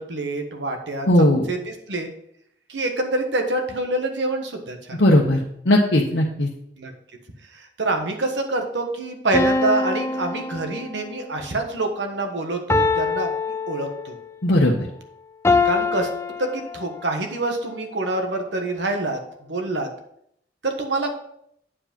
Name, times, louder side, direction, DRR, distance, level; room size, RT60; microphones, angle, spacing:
voice 1, 0.0-2.1 2.7-5.1 6.8-6.9 7.5-14.2 15.6-16.1 16.4-19.2 19.5-19.9 20.6-21.1, right 2 dB, 70° right, 4 dB, 1.4 m, -26 dB
voice 2, 1.1-1.4 5.0-5.4 5.7-6.5 14.4-14.9, left 1 dB, 70° left, -2 dB, 1.1 m, -17 dB
sound 1, 9.3-11.2 12.7-14.3 15.4-17.2, left 4 dB, 15° left, 0.4 m, -24 dB
8.6 x 5.0 x 5.2 m, 0.72 s
head